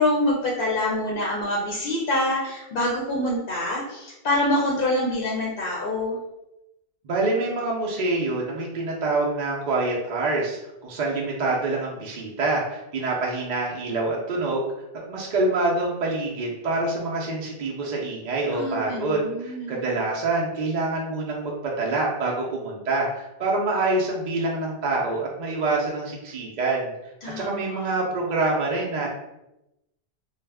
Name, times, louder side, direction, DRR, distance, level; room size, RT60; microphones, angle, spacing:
voice 1, 0.0-6.2 18.5-19.8 27.2-27.9, left 1 dB, 60° left, -4 dB, 0.7 m, -26 dB
voice 2, 7.0-14.6 15.1-26.9 27.4-29.1, right 2 dB, 55° right, -3 dB, 0.5 m, -26 dB
2.3 x 2.0 x 3.3 m, 0.90 s
omnidirectional pair, 1.1 m